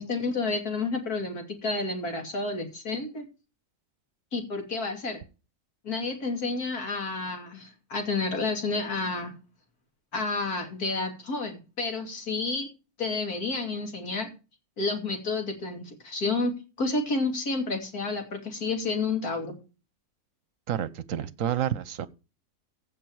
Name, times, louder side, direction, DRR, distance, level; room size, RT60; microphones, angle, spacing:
voice 1, 0.0-3.2 4.3-5.2 5.8-9.3 10.1-12.7 13.0-14.3 14.8-16.5 16.8-19.6, left 3 dB, 80° left, 3.1 m, -30 dB
voice 2, 20.7-22.1, right 10 dB, 65° right, 1.1 m, -29 dB
16.0 x 5.5 x 4.7 m
omnidirectional pair, 1.6 m